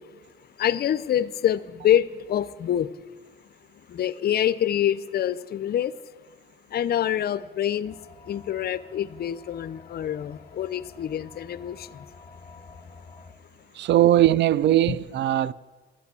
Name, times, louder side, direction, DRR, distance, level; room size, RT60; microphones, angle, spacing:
voice 1, 0.6-2.9 3.9-5.9 6.7-7.9 8.3-11.9, left 10 dB, 50° left, 0.5 m, -26 dB
sound 1, 7.8-13.3, left 4 dB, 30° left, 0.9 m, -49 dB
voice 2, 13.7-15.5, right 13 dB, 65° right, 0.4 m, -20 dB
11.0 x 8.5 x 8.2 m
cardioid pair, 90°, 20 cm